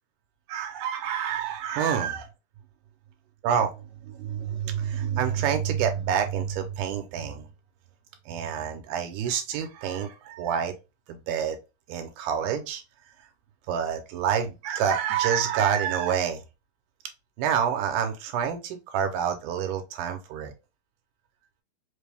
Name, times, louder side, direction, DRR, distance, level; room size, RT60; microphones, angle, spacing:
voice 1, 0.5-2.3 3.4-3.7 4.0-7.5 8.3-10.7 11.1-11.6 11.9-12.8 13.7-16.4 17.4-20.5, right 8 dB, 75° right, 2.1 m, -27 dB
5.3 x 2.3 x 3.2 m
omnidirectional pair, 3.8 m